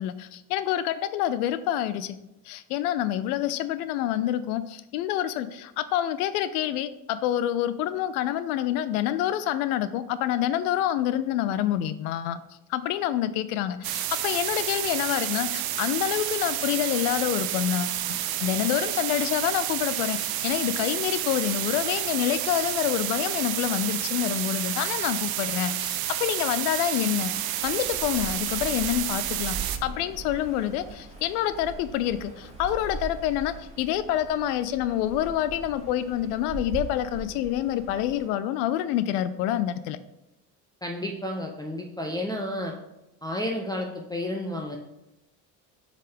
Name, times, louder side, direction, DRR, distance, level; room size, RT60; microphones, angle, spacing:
voice 1, 0.0-2.2 2.5-12.4 12.7-27.3 27.6-40.0, left 11 dB, 80° left, 14 dB, 0.5 m, -27 dB
sound 1, 13.8-29.8, right 12 dB, 55° right, 0.7 m, -30 dB
sound 2, 27.6-38.3, right 3 dB, 15° right, 2.0 m, -40 dB
voice 2, 40.8-42.7 43.2-44.8, left 1 dB, 10° left, 1 dB, 0.7 m, -31 dB
7.5 x 3.7 x 3.4 m, 0.92 s
supercardioid pair, 80°, 44 cm